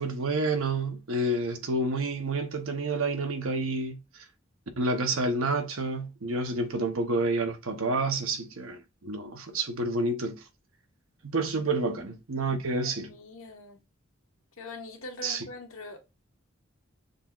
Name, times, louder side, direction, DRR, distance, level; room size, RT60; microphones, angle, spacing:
voice 1, 0.0-4.0 4.8-10.4 11.2-13.1 15.2-15.4, right 2 dB, 85° right, 0.9 m, -29 dB
voice 2, 12.5-13.8 14.6-16.0, left 2 dB, 85° left, 1.3 m, -43 dB
6.5 x 2.9 x 2.4 m
head